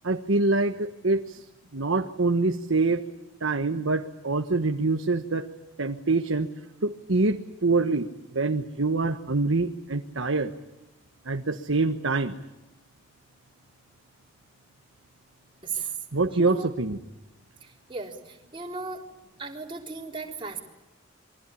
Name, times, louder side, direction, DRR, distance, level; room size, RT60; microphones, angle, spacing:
voice 1, 0.0-1.4 1.7-3.0 3.4-5.5 5.8-6.5 6.8-10.5 11.2-12.3 15.7-17.0, right 3 dB, 85° right, 5 dB, 1.3 m, -25 dB
voice 2, 16.3-16.7 17.9-19.0 19.4-20.6, right 3 dB, 25° right, 0 dB, 3.8 m, -35 dB
27.5 x 23.5 x 8.5 m, 1.0 s
head